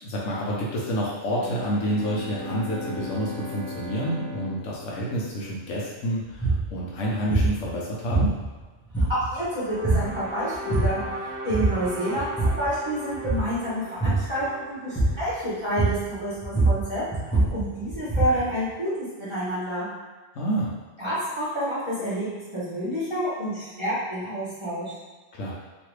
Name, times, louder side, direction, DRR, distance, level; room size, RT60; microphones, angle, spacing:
voice 1, 0.0-8.4 20.3-20.7 25.3-25.5, equal, 70° left, -5 dB, 1.0 m, -28 dB
Bowed string instrument, 1.2-6.1, left 2 dB, 90° right, 1.2 m, -38 dB
sound 1, 6.4-6.7 7.3-7.6 8.1-8.6 8.9-9.4 9.8-10.1 10.5-11.1 11.5-11.9 12.2-12.7 13.1-13.5 14.0-14.3 15.0-15.3 15.8-16.1 16.4-18.5, right 2 dB, 10° left, 0.5 m, -24 dB
voice 2, 9.1-11.0 11.4-19.9 21.0-22.3 22.5-25.0, equal, 20° right, -12 dB, 1.1 m, -29 dB
sound 2, 9.4-15.6, right 1 dB, 65° right, 0.7 m, -38 dB
3.0 x 2.5 x 3.1 m, 1.3 s
omnidirectional pair, 1.4 m